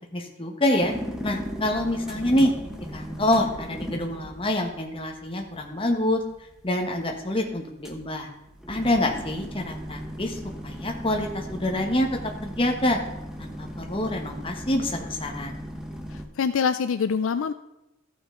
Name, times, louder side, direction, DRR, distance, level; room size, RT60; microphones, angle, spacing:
voice 1, 0.1-0.9 1.2-2.5 2.9-6.2 6.6-8.3 8.7-12.1 12.4-13.0 13.4-15.6, left 1 dB, 25° left, 2 dB, 1.2 m, -26 dB
sound 1, 0.8-16.3, equal, ahead, 0.8 m, -37 dB
voice 2, 16.1-17.5, left 6 dB, 70° left, 11 dB, 0.4 m, -25 dB
14.0 x 5.9 x 3.8 m, 0.95 s
head